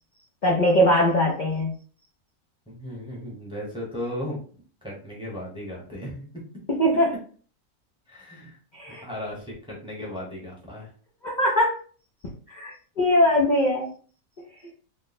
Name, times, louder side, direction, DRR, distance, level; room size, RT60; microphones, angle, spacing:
voice 1, 0.4-1.7 6.7-7.1 8.7-9.0 11.2-11.8 12.5-13.9, left 1 dB, 70° left, -3 dB, 0.4 m, -21 dB
voice 2, 2.7-4.4 4.8-6.4 8.1-8.6 8.9-10.9, left 1 dB, 5° right, -4 dB, 0.7 m, -36 dB
3.0 x 2.1 x 4.0 m, 0.42 s
omnidirectional pair, 1.6 m